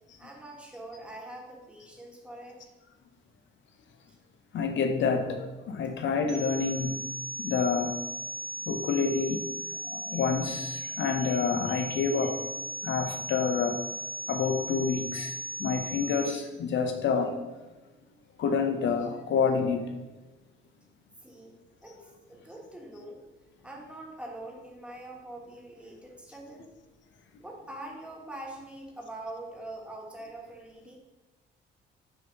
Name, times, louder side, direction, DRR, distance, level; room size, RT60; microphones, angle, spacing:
voice 1, 0.2-2.6 21.2-23.2 23.6-26.7 27.4-31.0, right 1 dB, 5° right, -2 dB, 1.4 m, -44 dB
voice 2, 4.5-7.1 7.4-8.0 8.7-9.5 9.9-12.4 12.8-13.8 14.3-17.4 18.4-19.9, left 5 dB, 70° left, 6 dB, 0.8 m, -28 dB
sound 1, 6.3-16.3, equal, 75° right, 1.5 m, -37 dB
6.7 x 2.9 x 5.2 m, 1.1 s
cardioid pair, 90°, 20 cm